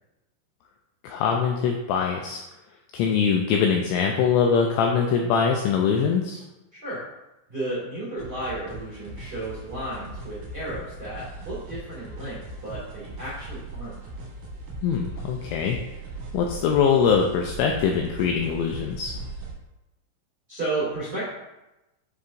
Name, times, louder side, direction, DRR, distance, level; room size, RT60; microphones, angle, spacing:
voice 1, 1.0-2.4 2.9-6.4 14.8-15.8 16.3-19.1, left 6 dB, 85° left, 2 dB, 2.6 m, -23 dB
voice 2, 7.5-13.9 20.5-21.2, right 2 dB, 85° right, -9 dB, 0.9 m, -33 dB
sound 1, 8.2-19.5, right 2 dB, 70° right, 2.0 m, -39 dB
9.7 x 4.7 x 2.5 m, 0.98 s
omnidirectional pair, 5.9 m